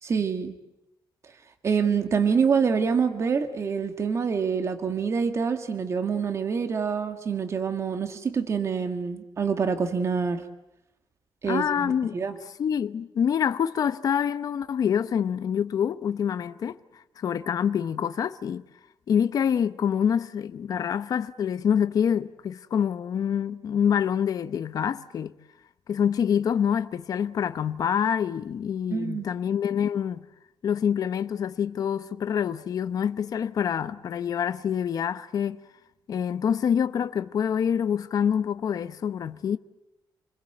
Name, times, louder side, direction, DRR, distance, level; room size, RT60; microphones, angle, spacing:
voice 1, 0.0-0.5 1.6-10.4 11.4-12.4 28.9-29.3, right 6 dB, 35° right, 1.8 m, -26 dB
voice 2, 11.5-12.2 12.6-18.6 19.1-25.3 25.9-30.3 30.6-35.6 36.1-39.6, left 8 dB, 50° left, 0.9 m, -26 dB
29.0 x 21.5 x 7.8 m
wide cardioid pair, 175°, 8 cm